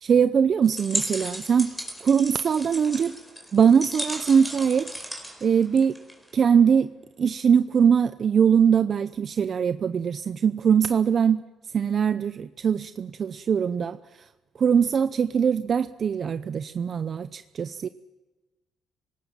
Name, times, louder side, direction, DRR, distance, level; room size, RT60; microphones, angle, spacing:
voice 1, 0.0-1.7 2.0-3.2 3.5-4.9 5.4-6.0 6.3-6.9 7.2-11.4 11.7-14.0 14.6-17.9, right 7 dB, 50° right, 12 dB, 0.6 m, -21 dB
sound 1, 0.6-6.3, equal, ahead, 4.8 m, -35 dB
26.0 x 19.0 x 7.6 m, 1.2 s
cardioid pair, 90°, 0 cm